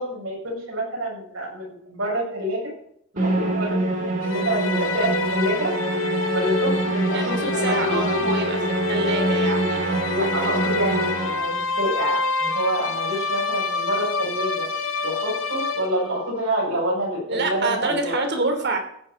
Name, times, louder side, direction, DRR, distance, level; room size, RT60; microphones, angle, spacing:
voice 1, 0.0-2.7 3.1-5.7 6.3-8.0 10.1-14.7 15.0-18.2, right 1 dB, 80° right, -2 dB, 7.8 m, -27 dB
Musical instrument, 3.2-11.7, right 2 dB, 40° right, 3.7 m, -26 dB
sound 1, 4.2-16.3, left 3 dB, 70° left, 2.1 m, -27 dB
voice 2, 7.1-10.0 17.3-18.8, right 3 dB, 55° right, 5 dB, 3.2 m, -27 dB
15.5 x 6.8 x 9.0 m, 0.70 s
head